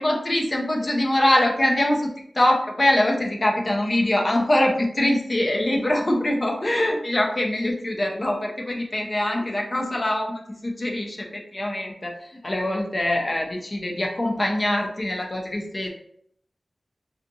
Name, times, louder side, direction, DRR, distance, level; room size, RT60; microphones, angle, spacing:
voice 1, 0.0-15.9, left 1 dB, 40° left, 0 dB, 0.6 m, -23 dB
2.5 x 2.5 x 2.6 m, 0.68 s
wide cardioid pair, 55°, 0 cm